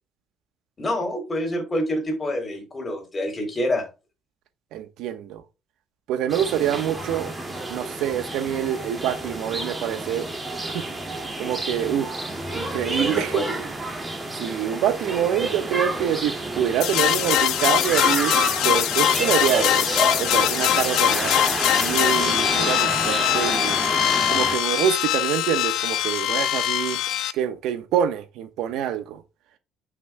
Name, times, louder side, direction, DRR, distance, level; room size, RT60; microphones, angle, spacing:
voice 1, 0.8-3.9 13.0-13.6, left 1 dB, 20° left, 3.2 m, -27 dB
voice 2, 4.7-5.4 6.1-7.4 7.7-10.3 10.6-10.8 11.4-13.4 14.4-19.9 20.2-21.3 21.7-23.8 24.3-27.0 27.3-29.2, right 10 dB, 75° right, 1.0 m, -26 dB
sound 1, 6.3-24.6, right 2 dB, 15° right, 2.2 m, -29 dB
sound 2, 16.8-27.3, left 12 dB, 75° left, 0.6 m, -22 dB
9.2 x 6.2 x 2.2 m
cardioid pair, 120°, 0 cm